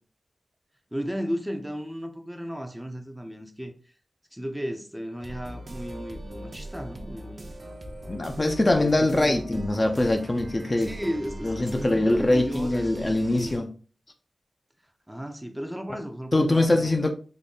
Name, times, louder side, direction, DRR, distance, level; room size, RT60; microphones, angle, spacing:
voice 1, 0.9-3.9 4.3-7.5 8.7-9.4 10.8-13.6 15.1-17.0, equal, 5° right, 0.6 m, -35 dB
sound 1, 5.2-13.6, right 1 dB, 50° right, 0.7 m, -41 dB
voice 2, 8.1-10.9 11.4-13.7 16.3-17.1, left 2 dB, 35° left, 0.6 m, -23 dB
3.8 x 2.1 x 3.7 m
wide cardioid pair, 65°, 0 cm